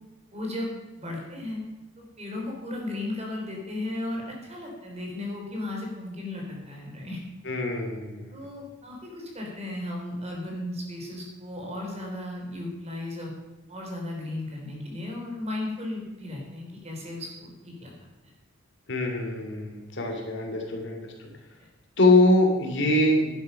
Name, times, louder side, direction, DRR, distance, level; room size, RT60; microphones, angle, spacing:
voice 1, 0.3-1.6 2.0-7.2 8.3-13.3 13.7-17.9 21.6-21.7, left 1 dB, 35° right, 0 dB, 3.8 m, -35 dB
voice 2, 7.5-8.4 18.9-21.3 22.0-23.3, left 2 dB, 65° left, 2 dB, 2.5 m, -23 dB
11.5 x 11.0 x 5.7 m, 1.1 s
head